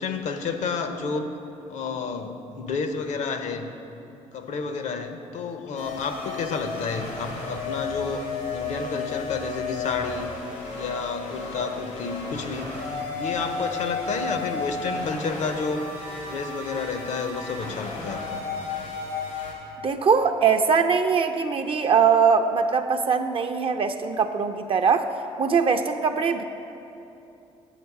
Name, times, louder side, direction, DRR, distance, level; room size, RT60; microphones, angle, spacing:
voice 1, 0.0-1.3 1.7-3.7 4.3-10.3 10.7-12.7 13.2-15.8 16.2-18.4, left 5 dB, 70° left, 8 dB, 0.7 m, -30 dB
sound 1, 5.8-19.5, left 3 dB, 90° left, 1.8 m, -33 dB
voice 2, 19.8-25.1 25.4-26.4, right 6 dB, 45° right, 7 dB, 0.4 m, -21 dB
7.8 x 7.4 x 4.7 m, 2.9 s
supercardioid pair, 70°, 13 cm